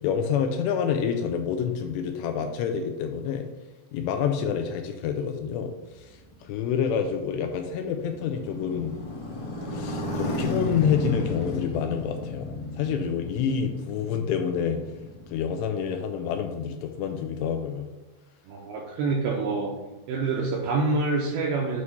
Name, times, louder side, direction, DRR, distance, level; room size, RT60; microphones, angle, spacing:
voice 1, 0.0-3.5 3.9-8.9 9.7-14.8 15.3-17.9, left 7 dB, 85° left, 5 dB, 2.5 m, -28 dB
Motorcycle, 6.0-15.9, left 2 dB, 55° left, 1.9 m, -34 dB
voice 2, 18.5-19.7 20.1-21.8, right 3 dB, 85° right, -1 dB, 2.3 m, -26 dB
8.3 x 3.2 x 5.5 m, 1.1 s
omnidirectional pair, 5.3 m